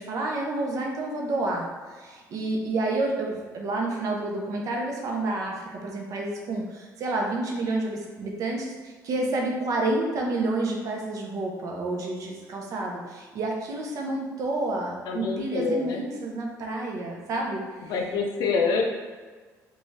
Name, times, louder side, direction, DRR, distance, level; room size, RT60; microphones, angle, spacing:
voice 1, 0.0-17.9, right 2 dB, 60° right, -1 dB, 0.6 m, -29 dB
voice 2, 15.1-16.0 17.9-18.8, left 4 dB, 75° left, 2 dB, 0.5 m, -26 dB
2.6 x 2.3 x 3.1 m, 1.4 s
cardioid pair, 105°, 7 cm